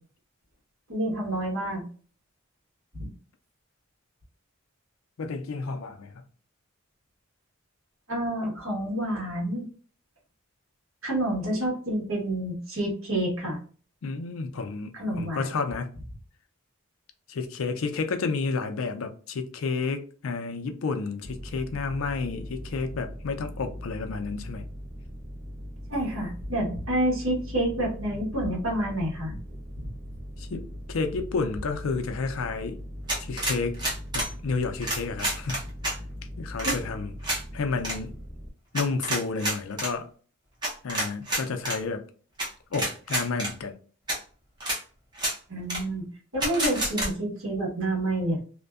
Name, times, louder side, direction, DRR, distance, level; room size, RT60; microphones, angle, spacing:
voice 1, 0.9-1.8 2.9-3.1 8.1-9.7 11.0-13.6 14.9-15.5 25.9-29.4 29.8-29.9 36.6-36.7 45.5-46.1 46.3-48.4, right 1 dB, 70° right, 1.2 m, -28 dB
voice 2, 5.2-6.2 14.0-15.9 17.3-24.6 30.4-32.8 33.2-33.8 34.1-35.6 36.4-37.1 37.5-38.1 38.7-40.1 40.8-42.0 42.7-43.7, left 4 dB, 70° left, 0.4 m, -31 dB
sound 1, 21.2-38.5, equal, 55° right, 0.7 m, -40 dB
sound 2, 33.1-34.3 34.8-35.9 36.6-36.8 37.2-37.4 37.8-38.0 38.7-39.9 40.6-41.8 42.4-42.5 42.7-43.5 44.1-44.2 44.6-44.8 45.1-45.3 45.7-45.8 46.4-47.1, right 1 dB, 20° right, 0.6 m, -28 dB
2.5 x 2.1 x 2.3 m
head